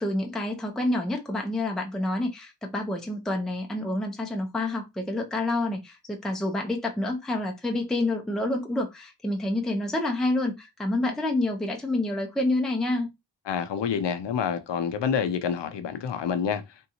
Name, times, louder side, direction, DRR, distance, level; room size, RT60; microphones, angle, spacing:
voice 1, 0.0-13.1, left 2 dB, ahead, 0.5 m, -28 dB
voice 2, 13.5-16.6, left 7 dB, 85° left, 0.7 m, -27 dB
3.6 x 2.7 x 2.8 m
wide cardioid pair, 125°, 41 cm